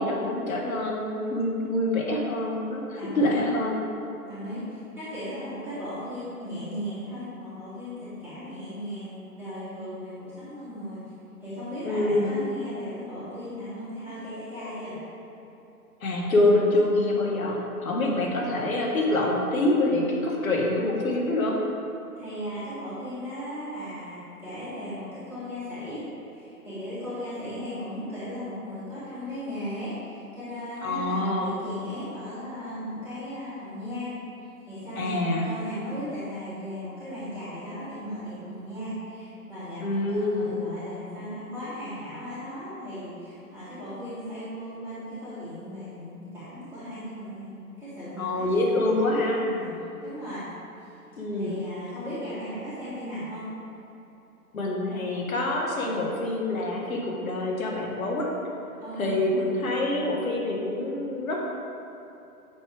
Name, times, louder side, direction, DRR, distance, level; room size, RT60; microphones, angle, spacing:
voice 1, 0.0-3.8 11.8-12.4 16.0-21.6 30.8-31.6 35.0-35.5 39.8-40.6 48.2-49.4 51.2-51.6 54.5-58.3 59.0-61.4, left 1 dB, 60° left, -2 dB, 1.8 m, -26 dB
voice 2, 3.0-3.4 4.3-11.0 11.4-15.1 18.0-18.3 22.2-34.1 34.6-49.7 50.0-50.4 50.8-50.9 51.3-53.5 58.8-59.2, equal, 5° right, -15 dB, 1.8 m, -37 dB
9.4 x 6.3 x 3.6 m, 2.9 s
figure-of-eight pair, 135°, 46 cm